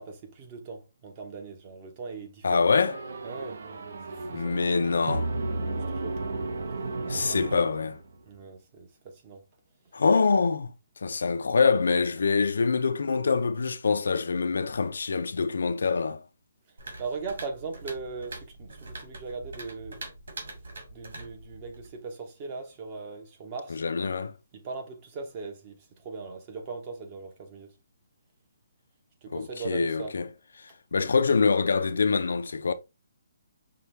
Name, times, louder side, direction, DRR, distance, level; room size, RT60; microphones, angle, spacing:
voice 1, 0.0-2.7 3.2-3.6 4.1-4.6 5.6-6.2 7.1-7.7 8.2-9.4 17.0-20.0 20.9-23.8 24.5-27.7 29.2-30.2, right 4 dB, 20° right, 0.8 m, -39 dB
voice 2, 2.4-3.0 4.3-5.3 7.1-7.9 9.9-10.7 11.0-16.2 23.7-24.3 29.3-30.2 30.9-32.7, left 4 dB, 75° left, 0.5 m, -25 dB
sound 1, 2.7-8.2, right 2 dB, 60° right, 0.8 m, -34 dB
sound 2, 16.8-22.0, right 2 dB, 75° right, 2.2 m, -43 dB
5.6 x 2.3 x 3.3 m
hypercardioid pair, 175°, 0 cm